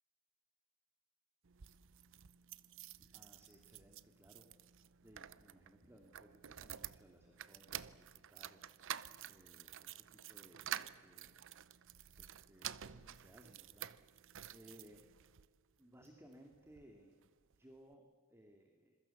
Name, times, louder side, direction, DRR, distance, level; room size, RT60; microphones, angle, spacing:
sound 1, 1.4-15.5 16.0-16.9 17.2-17.3 17.5-17.6, right 11 dB, 60° right, 0.7 m, -50 dB
voice 1, 3.0-4.5 5.0-8.9 9.2-11.5 12.2-15.1 15.8-17.1 17.6-19.0, equal, 10° right, 3 dB, 2.3 m, -63 dB
27.0 x 22.0 x 7.1 m, 1.5 s
head